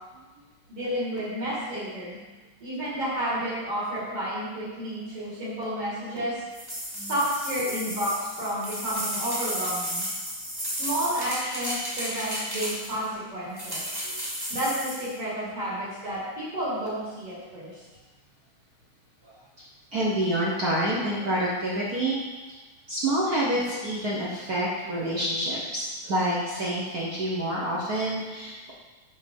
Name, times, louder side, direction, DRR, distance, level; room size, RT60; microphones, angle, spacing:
voice 1, 0.7-2.2 2.6-6.4 6.9-10.1 10.7-13.8 14.5-17.8, equal, 55° right, -9 dB, 2.9 m, -31 dB
sound 1, 6.5-13.0 13.6-15.1, equal, 10° right, 1.4 m, -33 dB
voice 2, 19.9-22.2 22.9-28.7, right 1 dB, 70° right, -5 dB, 0.8 m, -27 dB
6.5 x 5.9 x 5.4 m, 1.2 s
omnidirectional pair, 3.3 m